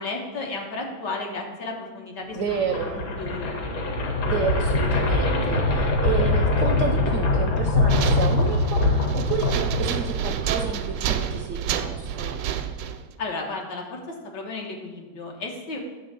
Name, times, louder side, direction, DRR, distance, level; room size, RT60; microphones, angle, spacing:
voice 1, 0.0-2.6 3.2-3.5 13.2-15.8, left 3 dB, 80° left, 0 dB, 1.8 m, -33 dB
sound 1, 2.3-10.4, left 2 dB, 60° left, 1.4 m, -23 dB
voice 2, 2.4-3.0 4.2-12.4, right 6 dB, 70° right, 4 dB, 0.8 m, -30 dB
sound 2, 7.9-13.1, right 8 dB, 90° right, 1.2 m, -29 dB
9.3 x 3.3 x 6.7 m, 1.3 s
omnidirectional pair, 1.9 m